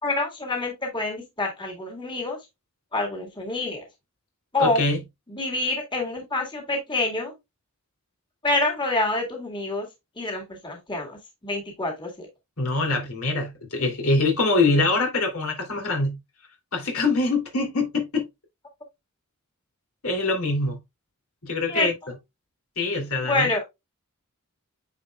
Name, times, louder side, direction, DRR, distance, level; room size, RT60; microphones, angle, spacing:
voice 1, 0.0-2.4 2.9-3.8 4.5-4.9 5.3-7.3 8.4-9.9 10.2-11.2 11.4-12.3 21.7-21.9 23.2-23.6, left 2 dB, 20° left, 1.9 m, -27 dB
voice 2, 4.6-5.0 12.6-16.2 16.7-18.3 20.0-20.8 21.4-21.9 22.8-23.6, left 3 dB, 75° left, 3.0 m, -24 dB
9.3 x 4.3 x 2.3 m
head